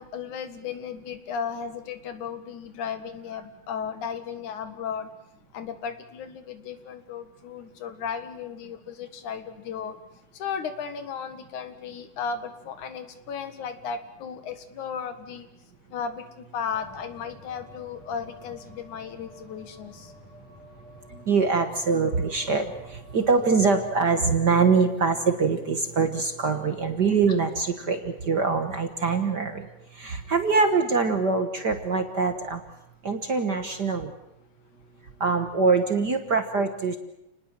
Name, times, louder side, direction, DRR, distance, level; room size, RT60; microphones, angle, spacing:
voice 1, 0.0-5.1 5.5-10.0 10.3-15.5 15.9-20.1, left 6 dB, 85° left, 9 dB, 3.2 m, -35 dB
sound 1, 16.7-24.5, equal, 65° left, 8.2 m, -50 dB
voice 2, 21.1-29.7 29.9-32.6 33.0-34.1 35.2-37.0, right 4 dB, 45° right, 7 dB, 1.5 m, -24 dB
29.5 x 19.5 x 7.5 m, 0.89 s
omnidirectional pair, 3.4 m